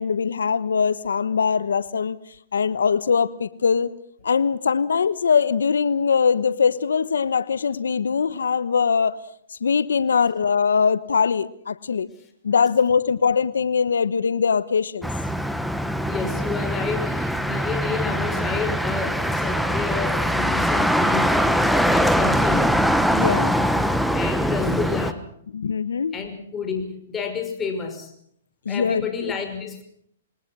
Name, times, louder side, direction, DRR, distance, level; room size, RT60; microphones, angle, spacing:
voice 1, 0.0-2.2 2.5-3.9 4.2-9.2 9.6-12.1 12.4-15.1 23.1-23.8 25.5-26.1 28.7-29.0, left 6 dB, 85° left, 16 dB, 1.1 m, -22 dB
Motor vehicle (road), 15.0-25.1, equal, ahead, 1.3 m, -22 dB
voice 2, 16.0-22.7 24.1-25.2 26.1-28.1 28.7-29.8, left 6 dB, 15° left, 5 dB, 5.7 m, -30 dB
28.0 x 20.0 x 6.3 m, 0.66 s
hypercardioid pair, 140°, 0 cm